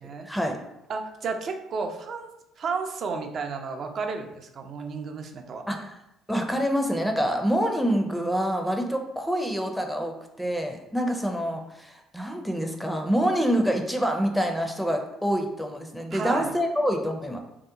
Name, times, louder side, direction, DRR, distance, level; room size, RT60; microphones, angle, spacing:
voice 1, 0.3-0.6 5.7-5.9 6.3-17.4, equal, ahead, 3 dB, 0.5 m, -26 dB
voice 2, 0.9-2.3 2.6-5.7 16.1-16.5, right 4 dB, 55° right, 5 dB, 0.4 m, -32 dB
2.8 x 2.0 x 3.7 m, 0.88 s
hypercardioid pair, 60°, 0 cm